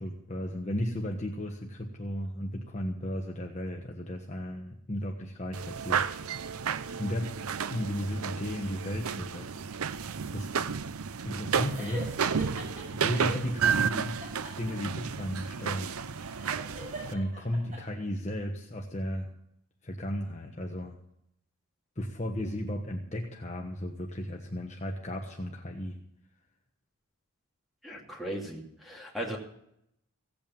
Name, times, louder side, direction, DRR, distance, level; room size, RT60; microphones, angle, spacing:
voice 1, 0.0-6.0 7.0-7.4 7.7-9.6 10.3-10.5 11.2-12.1 12.9-14.2 14.6-16.0 17.1-19.3 19.8-21.0 22.0-26.0, equal, 30° left, 1 dB, 1.3 m, -34 dB
sound 1, 5.5-17.1, right 6 dB, 75° right, 0.6 m, -32 dB
sound 2, 11.7-13.5 14.2-17.8, right 1 dB, 35° right, 5.8 m, -42 dB
voice 2, 27.8-29.4, right 1 dB, ahead, -2 dB, 2.6 m, -37 dB
16.5 x 8.6 x 7.2 m, 0.75 s
head